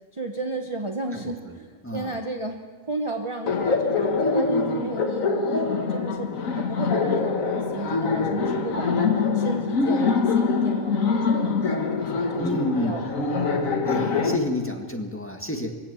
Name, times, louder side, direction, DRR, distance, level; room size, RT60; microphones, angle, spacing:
voice 1, 0.1-2.6 2.9-6.3 6.6-9.1 9.3-13.1, right 2 dB, 20° right, 2 dB, 1.1 m, -33 dB
voice 2, 1.1-1.5 1.8-2.2 12.4-13.0 13.8-15.8, left 1 dB, 10° left, 3 dB, 1.7 m, -30 dB
Laughter, 3.5-14.4, left 4 dB, 65° left, 1.9 m, -24 dB
23.0 x 16.0 x 7.1 m, 1.5 s
omnidirectional pair, 1.5 m